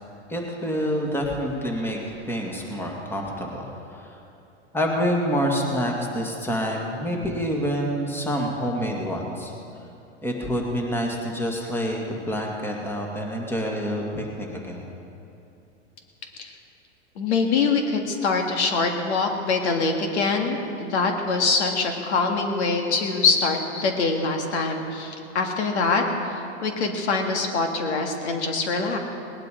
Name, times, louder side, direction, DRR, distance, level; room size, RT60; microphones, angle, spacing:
voice 1, 0.3-4.2 4.7-9.5 10.2-14.9, equal, 5° left, 0 dB, 2.0 m, -27 dB
voice 2, 17.2-29.0, left 4 dB, 75° left, 3 dB, 2.0 m, -24 dB
19.0 x 10.5 x 5.0 m, 2.7 s
hypercardioid pair, 115°, 34 cm